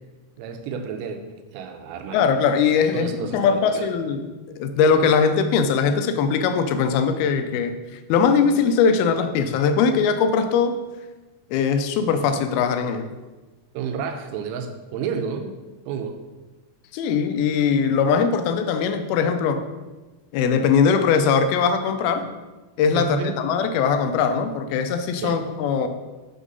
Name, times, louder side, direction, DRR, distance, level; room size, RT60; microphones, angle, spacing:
voice 1, 0.4-2.2 2.9-4.0 13.7-15.6 15.9-16.2 22.9-23.4 25.2-25.4, right 6 dB, 85° right, 6 dB, 2.4 m, -31 dB
voice 2, 2.1-4.3 4.6-7.7 8.1-10.8 11.5-13.1 16.9-19.6 20.3-22.2 22.8-25.9, left 6 dB, 85° left, 7 dB, 2.4 m, -20 dB
5.9 x 3.7 x 5.3 m, 1.2 s
omnidirectional pair, 4.3 m